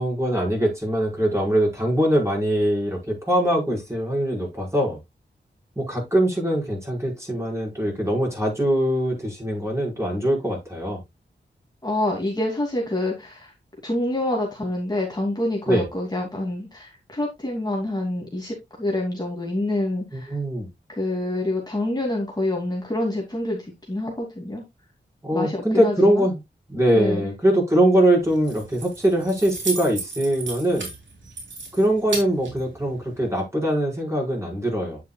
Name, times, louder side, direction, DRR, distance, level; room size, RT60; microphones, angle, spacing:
voice 1, 0.0-5.0 5.8-11.0 15.7-15.8 20.1-20.7 25.2-26.4 26.7-30.9 31.7-35.0, right 1 dB, 15° right, 5.3 m, -22 dB
voice 2, 11.8-13.5 13.8-20.4 20.9-24.6 25.3-26.3 26.9-27.3, left 1 dB, 20° left, 2.7 m, -27 dB
Keys jangling, 28.2-33.3, right 3 dB, 85° right, 3.4 m, -35 dB
9.7 x 7.4 x 2.4 m
wide cardioid pair, 75°, 19 cm